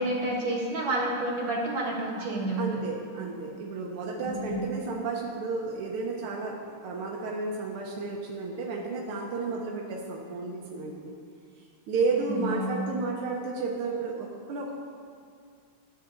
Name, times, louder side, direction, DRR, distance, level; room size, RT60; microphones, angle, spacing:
voice 1, 0.0-2.6 4.2-4.6 12.1-12.7, right 1 dB, 65° right, -5 dB, 2.3 m, -30 dB
voice 2, 2.6-11.1 11.9-14.7, right 3 dB, 90° right, -2 dB, 1.7 m, -32 dB
13.0 x 8.2 x 2.6 m, 2.2 s
omnidirectional pair, 2.3 m